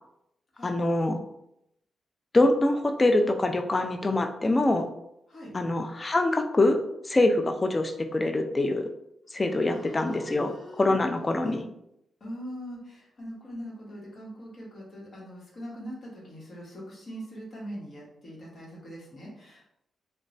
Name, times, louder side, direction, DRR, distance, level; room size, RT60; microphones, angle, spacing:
voice 1, 0.6-1.2 2.3-4.9 5.5-6.8 7.1-8.8 9.3-11.6, left 2 dB, 30° left, 6 dB, 0.3 m, -24 dB
voice 2, 9.7-11.6 12.2-19.6, equal, 50° left, -4 dB, 1.1 m, -42 dB
3.0 x 2.2 x 2.6 m, 0.80 s
cardioid pair, 80°, 0 cm